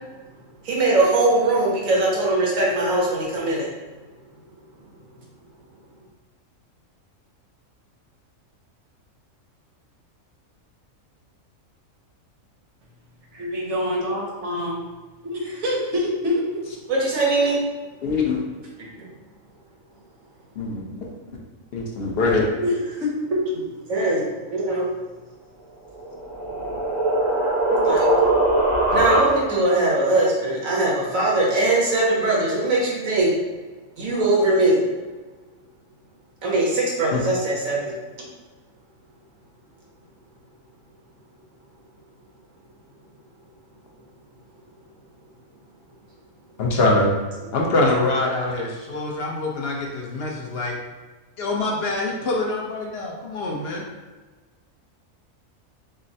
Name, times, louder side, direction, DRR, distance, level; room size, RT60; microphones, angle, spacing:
voice 1, 0.6-3.7 16.9-17.6 19.0-19.1 23.9-24.9 27.7-28.1 28.9-33.3 34.0-34.8 36.4-38.0, right 2 dB, 80° right, -4 dB, 1.4 m, -21 dB
voice 2, 13.4-14.8 15.2-16.4 22.6-23.7, left 1 dB, 60° right, -2 dB, 1.1 m, -25 dB
voice 3, 18.0-18.4 20.6-21.1 21.7-22.5 37.1-37.2 46.6-47.1 47.5-50.8 51.4-53.8, left 2 dB, 55° left, -1 dB, 0.9 m, -24 dB
sound 1, 25.9-29.7, right 1 dB, 45° right, 0.8 m, -21 dB
6.2 x 2.1 x 2.7 m, 1.3 s
omnidirectional pair, 1.4 m